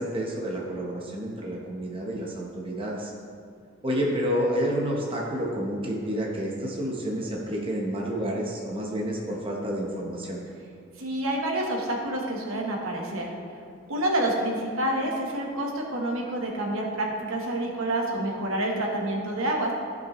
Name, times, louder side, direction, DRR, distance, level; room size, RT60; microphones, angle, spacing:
voice 1, 0.0-3.1 3.8-10.4, equal, 25° right, -2 dB, 0.9 m, -29 dB
voice 2, 11.0-13.3 13.9-19.7, right 1 dB, 65° right, 0 dB, 1.2 m, -28 dB
14.5 x 5.3 x 3.1 m, 2.2 s
head